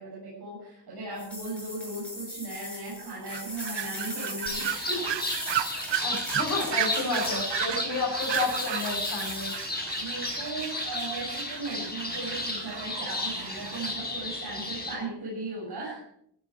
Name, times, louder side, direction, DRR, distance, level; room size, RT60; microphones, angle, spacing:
voice 1, 0.0-5.2 10.0-16.0, right 2 dB, 60° right, -6 dB, 7.5 m, -37 dB
sound 1, 1.2-7.7 8.2-9.7, left 1 dB, 5° left, 7.1 m, -39 dB
sound 2, 3.3-14.0, right 11 dB, 85° right, 0.8 m, -34 dB
sound 3, 4.5-14.9, left 2 dB, 25° left, 5.2 m, -34 dB
voice 2, 6.0-9.5, left 3 dB, 45° left, -4 dB, 6.4 m, -31 dB
16.5 x 14.5 x 4.9 m, 0.71 s
wide cardioid pair, 155°, 42 cm